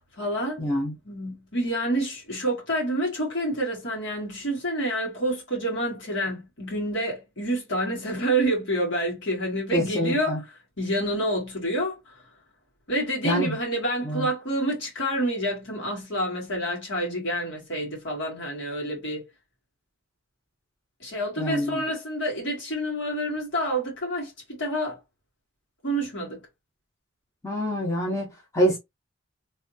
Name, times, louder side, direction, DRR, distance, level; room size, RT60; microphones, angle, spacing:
voice 1, 0.0-0.7 1.1-10.4 10.8-12.1 12.9-19.3 21.0-25.0 25.8-26.4, right 1 dB, 60° left, 2.1 m, -28 dB
voice 2, 0.6-0.9 9.7-10.4 13.2-13.6 14.0-14.3 21.4-21.8 27.4-28.8, equal, 15° left, 1.0 m, -26 dB
3.4 x 2.9 x 2.8 m
head